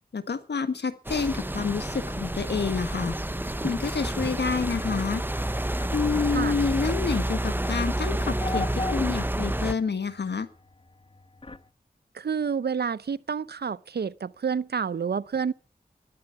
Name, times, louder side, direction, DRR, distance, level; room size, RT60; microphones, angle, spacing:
voice 1, 0.1-3.2 3.6-5.2 5.9-10.5, left 5 dB, 85° left, 1.5 m, -28 dB
sound 1, 1.0-9.7, right 1 dB, 10° right, 0.9 m, -29 dB
Bowed string instrument, 1.3-7.0 7.6-7.7, left 1 dB, 35° right, 6.1 m, -47 dB
sound 2, 2.8-11.7, left 3 dB, 35° left, 1.2 m, -42 dB
voice 2, 12.1-15.5, right 6 dB, 75° right, 0.7 m, -29 dB
15.5 x 12.5 x 5.8 m
cardioid pair, 45°, 17 cm